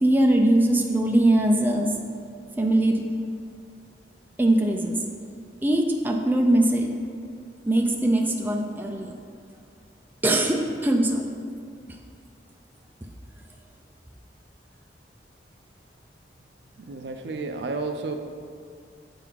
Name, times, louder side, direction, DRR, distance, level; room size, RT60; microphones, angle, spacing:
voice 1, 0.0-1.9 2.6-3.1 4.4-5.0 5.6-6.9 7.7-9.1 10.2-11.3, right 1 dB, 10° right, 1 dB, 0.4 m, -21 dB
voice 2, 16.8-18.2, right 3 dB, 70° right, 6 dB, 0.5 m, -31 dB
7.9 x 3.9 x 4.6 m, 2.2 s
head